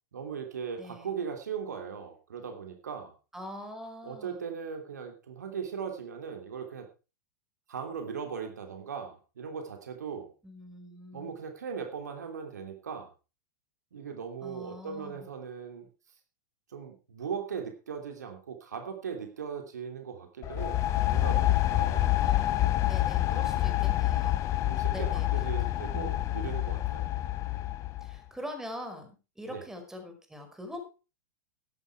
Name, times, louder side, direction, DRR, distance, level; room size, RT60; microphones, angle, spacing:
voice 1, 0.1-3.1 4.0-6.9 7.7-10.3 11.1-13.1 13.9-15.9 16.7-20.8 21.1-22.2 23.1-23.6 24.6-27.1 29.5-29.6, right 6 dB, 70° right, 4 dB, 3.0 m, -39 dB
voice 2, 0.8-1.1 3.3-4.4 10.4-11.3 14.4-15.3 22.2-24.4 24.9-25.4 28.0-30.8, left 1 dB, 5° right, 6 dB, 5.1 m, -43 dB
sound 1, 20.4-28.2, left 15 dB, 35° left, 0.9 m, -27 dB
13.5 x 11.0 x 4.7 m, 0.33 s
figure-of-eight pair, 95°, 10 cm